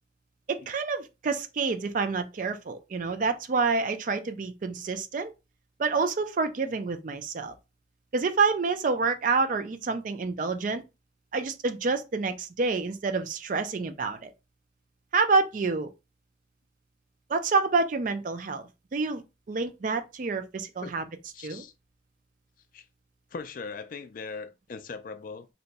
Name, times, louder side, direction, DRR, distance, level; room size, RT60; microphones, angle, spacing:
voice 1, 0.5-5.3 5.8-7.5 8.1-10.8 11.3-14.3 15.1-15.9 17.3-19.2 19.5-21.1 21.4-21.6, right 4 dB, 45° right, 0.4 m, -28 dB
voice 2, 21.3-21.7 22.7-22.8 23.3-25.5, left 4 dB, 45° left, 0.3 m, -39 dB
2.8 x 2.2 x 4.0 m
head